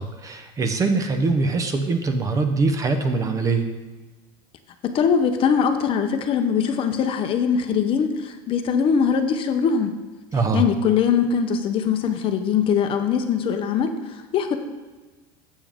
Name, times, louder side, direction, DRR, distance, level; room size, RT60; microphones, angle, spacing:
voice 1, 0.0-3.7 10.3-10.6, right 3 dB, 25° right, 7 dB, 0.6 m, -22 dB
voice 2, 4.8-9.9 10.5-14.6, left 7 dB, 40° left, 7 dB, 0.6 m, -22 dB
7.2 x 6.9 x 3.5 m, 1.3 s
supercardioid pair, 120°, 14 cm